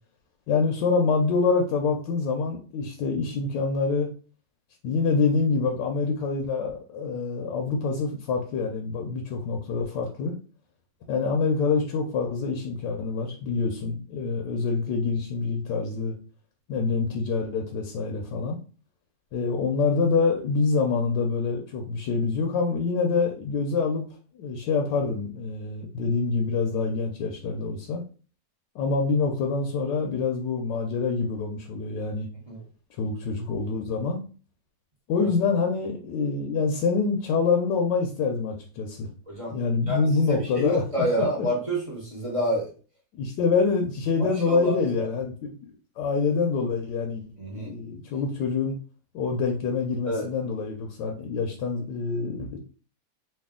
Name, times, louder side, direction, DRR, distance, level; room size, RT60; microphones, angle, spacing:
voice 1, 0.5-4.1 4.8-10.3 11.1-16.1 16.7-18.6 19.3-24.0 24.4-28.0 28.7-32.3 33.0-34.2 35.1-39.1 39.5-40.8 41.2-41.3 43.2-45.7 46.0-48.7 49.1-52.6, left 4 dB, 85° left, 2 dB, 1.3 m, -26 dB
voice 2, 39.3-39.6 39.9-42.7 44.2-45.1 47.4-47.7 50.1-50.3, equal, 25° right, -3 dB, 0.7 m, -28 dB
3.3 x 2.6 x 3.6 m, 0.38 s
omnidirectional pair, 1.8 m